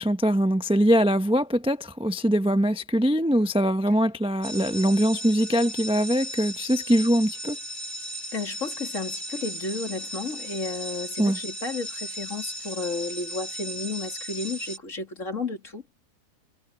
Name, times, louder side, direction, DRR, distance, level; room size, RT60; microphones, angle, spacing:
voice 1, 0.0-7.6 11.2-11.4, equal, 5° right, 0.4 m, -22 dB
sound 1, 4.4-14.8, equal, 30° left, 3.2 m, -36 dB
voice 2, 8.3-15.8, left 3 dB, 50° left, 3.2 m, -32 dB
omnidirectional pair, 1.7 m